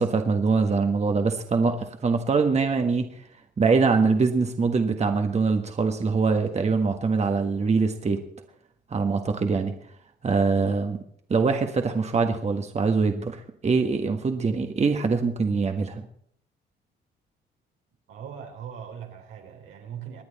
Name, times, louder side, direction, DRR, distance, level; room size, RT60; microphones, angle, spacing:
voice 1, 0.0-3.0 3.6-8.2 8.9-9.7 10.2-11.0 11.3-16.0, right 4 dB, 35° right, 1.4 m, -23 dB
voice 2, 18.1-20.2, right 8 dB, 85° right, 3.5 m, -40 dB
25.0 x 9.6 x 4.2 m
cardioid pair, 90°, 20 cm